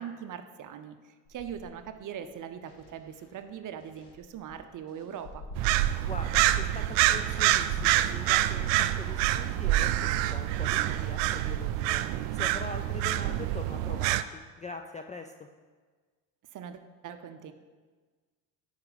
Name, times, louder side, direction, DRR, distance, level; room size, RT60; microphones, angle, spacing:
voice 1, 0.0-5.5 16.5-17.5, right 8 dB, 40° right, 9 dB, 0.7 m, -41 dB
sound 1, 1.2-5.6 6.0-12.8, left 2 dB, 55° left, 1.8 m, -51 dB
sound 2, 5.6-14.2, right 14 dB, 75° right, 0.5 m, -27 dB
voice 2, 6.0-12.0 12.3-15.5, left 3 dB, 15° left, 5 dB, 0.3 m, -42 dB
9.6 x 5.2 x 4.1 m, 1.4 s
hypercardioid pair, 70°, 48 cm